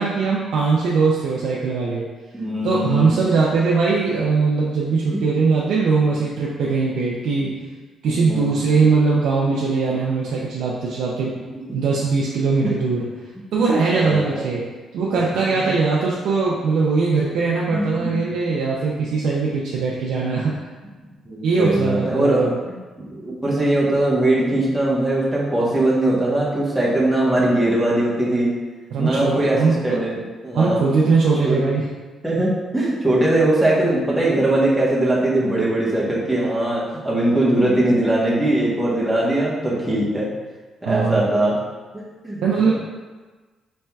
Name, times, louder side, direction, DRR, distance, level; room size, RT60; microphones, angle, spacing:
voice 1, 0.0-2.1 2.6-7.5 8.0-11.4 11.7-13.1 13.5-14.6 14.9-20.7 21.4-22.6 28.9-30.0 30.5-31.8 40.8-41.2 42.4-42.7, right 4 dB, 80° right, -5 dB, 0.5 m, -20 dB
voice 2, 2.3-3.1 8.1-8.5 12.6-12.7 13.6-14.4 17.7-18.2 21.3-28.5 29.0-30.8 31.4-31.6 32.2-40.3 40.8-41.5 41.9-42.7, right 1 dB, 5° right, -7 dB, 1.1 m, -21 dB
4.2 x 3.3 x 2.3 m, 1.3 s
cardioid pair, 105°, 0 cm